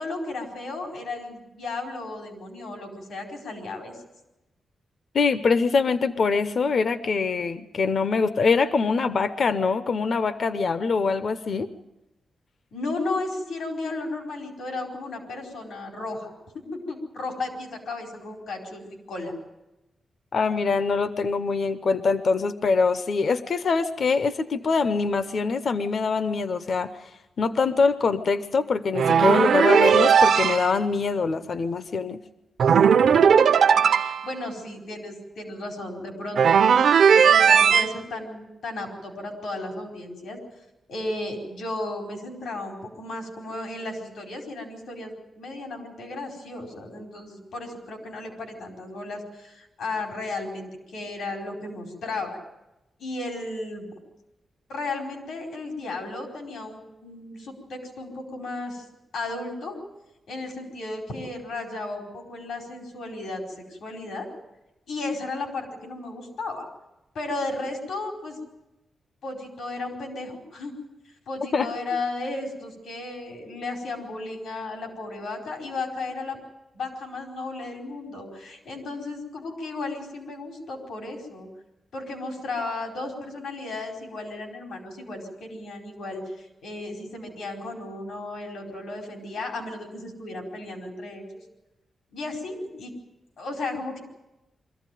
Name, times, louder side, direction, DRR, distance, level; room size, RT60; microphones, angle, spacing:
voice 1, 0.0-4.0 12.7-16.3 16.7-19.3 33.0-33.2 33.7-40.4 40.9-52.4 53.0-53.9 54.7-58.8 59.1-59.8 60.3-64.3 64.9-66.7 67.1-68.4 69.2-70.7 71.3-76.4 76.7-81.5 81.9-91.4 92.1-92.9 93.4-94.0, left 2 dB, 85° left, 1 dB, 4.6 m, -34 dB
voice 2, 5.1-11.7 20.3-27.1 27.4-32.2 71.5-71.7, left 4 dB, 50° left, 11 dB, 0.8 m, -24 dB
sound 1, 28.9-30.7 32.6-34.3 36.4-37.9, right 7 dB, 70° right, 0.8 m, -17 dB
24.0 x 15.0 x 9.2 m, 0.98 s
wide cardioid pair, 170°, 0 cm